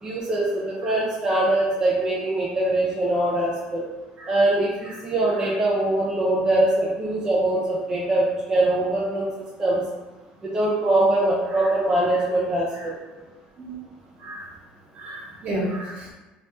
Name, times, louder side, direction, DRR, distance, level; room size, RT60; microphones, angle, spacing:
voice 1, 0.0-3.8 4.3-9.3 9.6-9.8 10.4-13.0, right 1 dB, 25° right, -5 dB, 0.6 m, -22 dB
voice 2, 15.0-16.1, right 1 dB, 55° right, -5 dB, 1.4 m, -31 dB
2.9 x 2.8 x 3.3 m, 1.1 s
cardioid pair, 110°, 3 cm